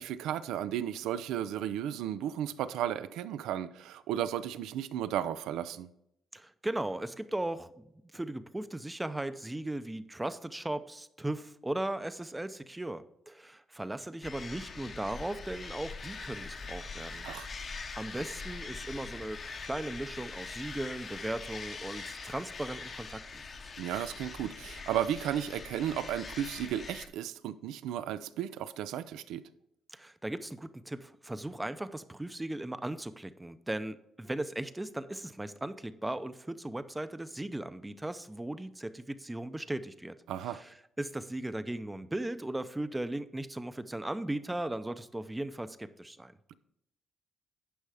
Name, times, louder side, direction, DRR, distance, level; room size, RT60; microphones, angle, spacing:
voice 1, 0.0-5.9 17.2-17.5 23.8-29.4 40.3-40.6, right 10 dB, 90° right, 0.5 m, -34 dB
voice 2, 6.3-7.7 8.1-17.3 17.6-23.4 29.9-40.2 40.5-46.4, right 1 dB, 10° right, 0.6 m, -37 dB
sound 1, 14.2-27.1, left 4 dB, 45° left, 1.0 m, -43 dB
10.0 x 5.4 x 4.8 m
cardioid pair, 90°, 0 cm